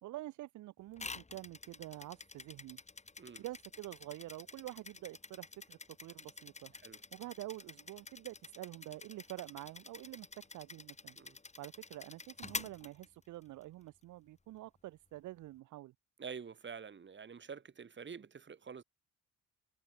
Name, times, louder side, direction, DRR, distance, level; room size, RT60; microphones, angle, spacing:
voice 1, 0.0-2.8 3.4-6.7 7.1-10.3 10.5-11.2 11.6-15.9, right 16 dB, 75° right, 0.7 m, -47 dB
sound 1, 1.0-13.6, left 3 dB, 20° left, 3.6 m, -49 dB
voice 2, 16.2-18.8, right 6 dB, 40° right, 2.8 m, -47 dB
cardioid pair, 90°, 30 cm